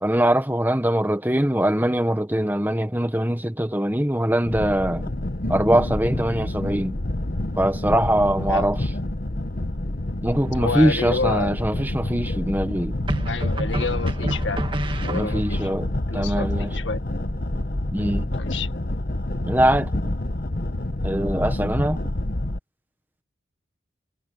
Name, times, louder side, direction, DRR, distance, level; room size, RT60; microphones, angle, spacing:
voice 1, 0.0-5.1 5.5-7.0 7.6-8.8 10.2-13.0 15.1-15.9 16.1-16.8 17.9-18.3 19.4-20.0 21.0-22.0, right 1 dB, 10° right, 1.5 m, -22 dB
sound 1, 4.4-22.6, left 1 dB, 50° left, 1.3 m, -28 dB
sound 2, 10.4-11.0 13.1-15.7, right 1 dB, 25° right, 1.8 m, -30 dB
voice 2, 10.5-11.5 13.3-14.6 15.0-15.7 16.1-17.0 18.3-18.7, left 3 dB, 90° left, 1.8 m, -29 dB
head